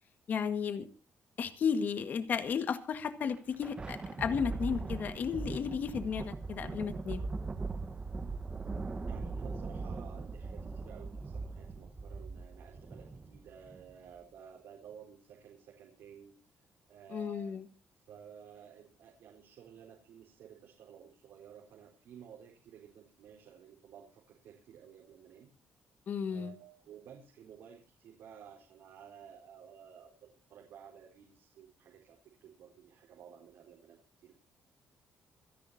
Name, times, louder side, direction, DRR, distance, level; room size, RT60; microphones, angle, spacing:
voice 1, 0.3-0.9 1.4-7.2 17.1-17.7 26.1-26.5, left 6 dB, 45° left, 10 dB, 1.7 m, -34 dB
Thunder, 3.2-13.9, right 3 dB, 25° right, 1.2 m, -40 dB
voice 2, 9.1-16.4 16.9-17.6 18.0-25.5 26.3-34.3, right 8 dB, 80° right, -1 dB, 4.5 m, -54 dB
27.5 x 11.0 x 2.8 m, 0.33 s
cardioid pair, 145°, 4 cm